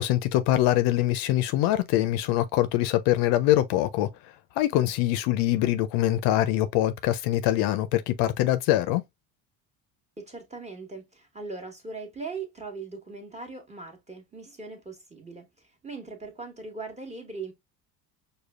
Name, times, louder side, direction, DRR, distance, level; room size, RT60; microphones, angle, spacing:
voice 1, 0.0-4.1 4.6-9.0, left 14 dB, 65° left, 0.5 m, -23 dB
voice 2, 10.2-17.5, right 4 dB, 15° right, 1.2 m, -40 dB
4.9 x 2.3 x 2.3 m
hypercardioid pair, 75°, 44 cm